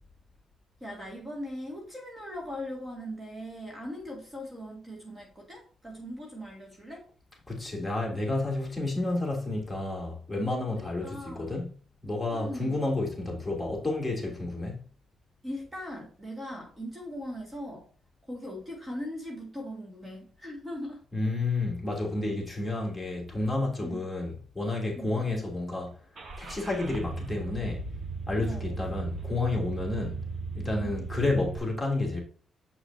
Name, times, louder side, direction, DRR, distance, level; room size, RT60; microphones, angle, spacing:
voice 1, 0.8-7.1 10.8-11.5 12.3-12.7 15.4-17.9 18.2-21.0 23.8-24.0 25.0-25.2 28.4-28.7 30.8-31.1, equal, 20° right, 2.3 m, -39 dB
voice 2, 7.5-11.7 12.0-14.8 21.1-26.0 26.4-27.8 28.3-30.2 30.5-32.2, left 2 dB, 5° left, 3.0 m, -30 dB
Car / Engine starting, 26.1-31.6, right 4 dB, 50° right, 1.5 m, -37 dB
7.4 x 6.4 x 2.8 m
cardioid pair, 105°, 0 cm